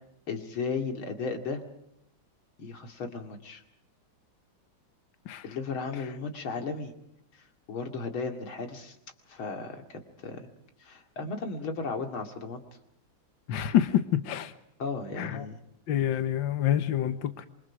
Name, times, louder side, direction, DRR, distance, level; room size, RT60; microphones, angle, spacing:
voice 1, 0.3-1.6 2.6-3.6 5.4-6.9 7.3-9.0 9.3-10.5 10.8-12.6 14.8-15.6, left 4 dB, 90° left, 5 dB, 3.2 m, -35 dB
voice 2, 13.5-14.5 15.2-15.5 15.9-17.5, left 11 dB, 70° left, 10 dB, 1.8 m, -27 dB
27.5 x 24.0 x 4.9 m, 0.80 s
omnidirectional pair, 2.2 m